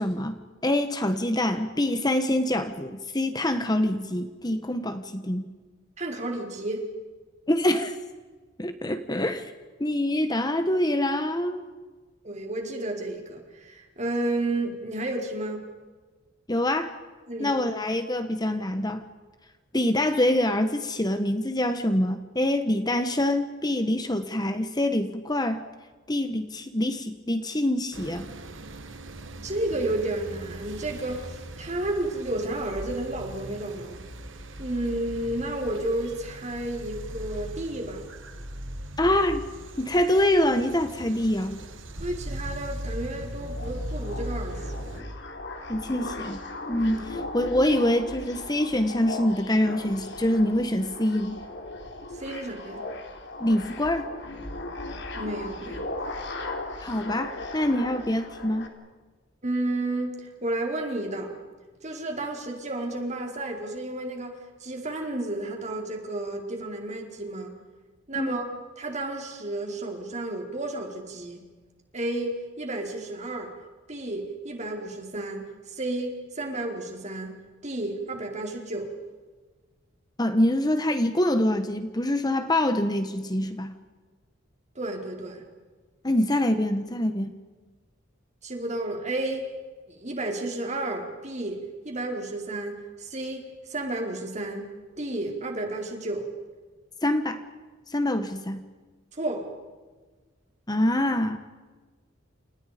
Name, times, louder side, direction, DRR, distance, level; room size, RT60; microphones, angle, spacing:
voice 1, 0.0-5.5 7.5-8.0 8.6-9.5 9.8-11.6 16.5-17.0 17.4-19.0 19.7-25.6 26.1-28.3 39.0-39.5 39.8-41.6 45.7-46.4 46.7-51.4 53.4-54.1 56.8-58.7 68.1-68.4 80.2-83.7 86.0-87.4 97.0-97.4 97.9-98.6 100.7-101.4, left 1 dB, 20° left, 9 dB, 1.3 m, -25 dB
voice 2, 6.0-6.9 12.2-15.7 17.3-17.8 29.4-34.0 34.6-38.0 42.0-45.0 46.9-47.1 52.1-52.8 55.1-55.8 59.4-61.3 61.8-67.5 68.1-68.5 68.8-71.4 71.9-73.5 73.9-77.4 77.6-78.9 84.7-85.4 88.4-89.5 89.9-91.6 91.8-93.4 93.7-94.7 95.0-96.3 99.1-99.5, right 2 dB, 35° right, 2 dB, 4.7 m, -32 dB
sound 1, 27.9-45.0, right 1 dB, 75° right, 2.4 m, -39 dB
sound 2, 43.4-58.7, left 2 dB, 60° left, 3.8 m, -37 dB
30.0 x 29.0 x 5.2 m, 1.4 s
head